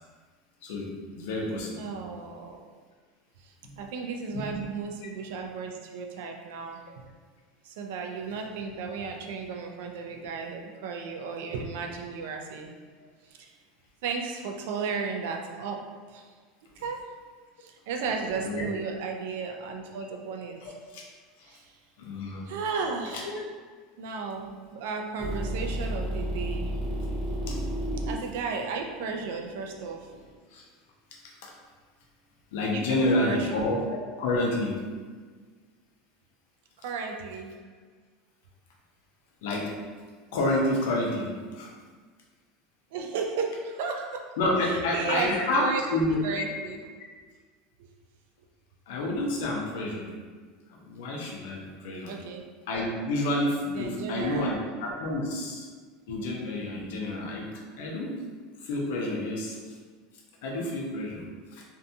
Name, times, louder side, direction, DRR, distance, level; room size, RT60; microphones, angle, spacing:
voice 1, 0.6-1.8 4.3-4.6 18.4-18.6 20.6-21.0 21.5-21.6 22.0-22.5 23.1-23.4 27.5-27.6 30.5-30.7 31.4-31.5 32.5-34.8 39.4-39.8 40.3-41.7 44.4-46.4 48.9-50.1 50.7-52.1 52.7-55.7 56.1-58.2 58.6-59.8 60.4-61.2 61.5-61.6, left 1 dB, 80° left, -2 dB, 0.6 m, -29 dB
voice 2, 1.8-2.6 3.4-6.8 7.6-12.7 13.3-13.5 14.0-15.8 16.1-16.3 16.8-17.0 17.6-20.6 21.4-21.8 22.5-23.3 24.0-26.7 28.1-30.1 32.7-33.6 36.8-37.6 42.9-44.2 44.6-45.8 46.2-46.8 52.1-52.4 53.7-54.6, right 5 dB, 75° right, 2 dB, 0.4 m, -34 dB
sound 1, 25.2-30.3, equal, 30° right, 0.7 m, -32 dB
2.6 x 2.2 x 2.6 m, 1.5 s
supercardioid pair, 140°, 0 cm